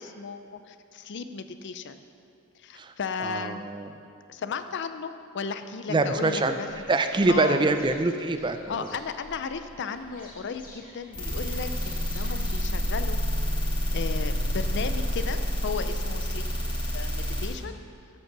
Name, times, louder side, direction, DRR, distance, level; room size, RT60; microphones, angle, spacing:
voice 1, 0.0-2.0 2.6-3.6 4.3-6.7 7.3-7.6 8.7-13.2 13.9-17.7, left 5 dB, 55° left, 10 dB, 0.5 m, -35 dB
voice 2, 3.2-3.9 5.9-6.6 6.9-8.9, right 2 dB, 20° right, 8 dB, 0.4 m, -25 dB
sound 1, 5.9-12.5, equal, 40° left, 1.8 m, -47 dB
sound 2, 11.1-17.5, equal, 25° left, 2.9 m, -28 dB
14.5 x 5.4 x 6.0 m, 2.4 s
head